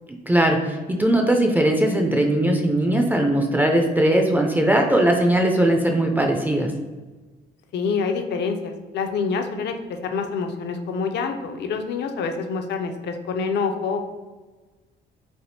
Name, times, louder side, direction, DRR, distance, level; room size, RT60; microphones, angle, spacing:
voice 1, 0.3-6.7, right 1 dB, 10° right, 2 dB, 0.3 m, -19 dB
voice 2, 7.7-9.8 10.0-14.1, left 5 dB, 60° left, 5 dB, 0.4 m, -26 dB
3.3 x 2.4 x 2.6 m, 1.3 s
cardioid pair, 90°, 20 cm